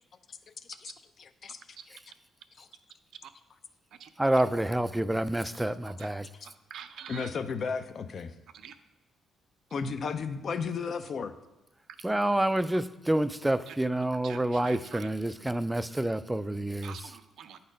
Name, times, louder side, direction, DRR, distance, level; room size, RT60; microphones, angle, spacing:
voice 1, 1.2-1.6 2.6-2.7 6.4-6.5 7.1-8.3 9.7-11.3, left 5 dB, 55° left, 0.5 m, -34 dB
voice 2, 4.2-6.3 12.0-16.9, right 1 dB, 10° right, 0.3 m, -28 dB
voice 3, 6.4-7.3 8.5-8.8 13.7-13.8 14.1-15.1 16.8-17.6, right 8 dB, 75° right, 0.5 m, -46 dB
8.4 x 4.2 x 5.1 m
cardioid pair, 90°, 0 cm